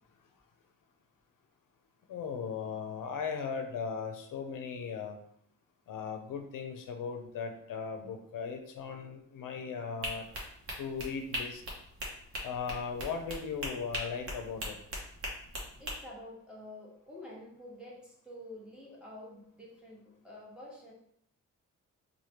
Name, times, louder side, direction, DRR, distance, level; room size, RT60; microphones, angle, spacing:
voice 1, 2.1-5.2 5.9-10.3 10.8-11.6 12.4-14.8, left 6 dB, 85° left, 5 dB, 0.5 m, -38 dB
sound 1, 10.0-15.9, equal, 45° right, 0.9 m, -39 dB
voice 2, 15.8-20.9, left 1 dB, 5° right, -6 dB, 0.9 m, -48 dB
3.2 x 2.2 x 4.2 m, 0.68 s
wide cardioid pair, 170°, 31 cm